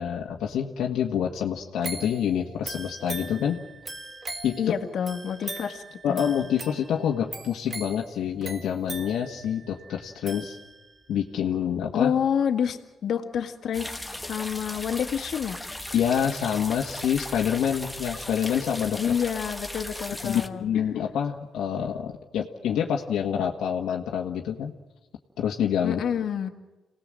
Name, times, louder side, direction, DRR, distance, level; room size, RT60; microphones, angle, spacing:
voice 1, 0.0-3.6 4.4-4.6 6.0-10.6 11.1-12.1 15.9-19.0 20.2-24.7 25.4-26.0, left 8 dB, 75° left, 1 dB, 1.6 m, -27 dB
sound 1, 1.8-11.1 11.5-11.6, right 3 dB, 35° right, 2.2 m, -40 dB
voice 2, 4.6-6.2 11.9-15.6 19.0-20.7 25.8-26.5, left 8 dB, 60° left, 5 dB, 1.9 m, -28 dB
sound 2, 13.7-20.5, left 1 dB, 5° left, 1.5 m, -37 dB
27.0 x 19.0 x 7.7 m, 1.1 s
cardioid pair, 90°, 0 cm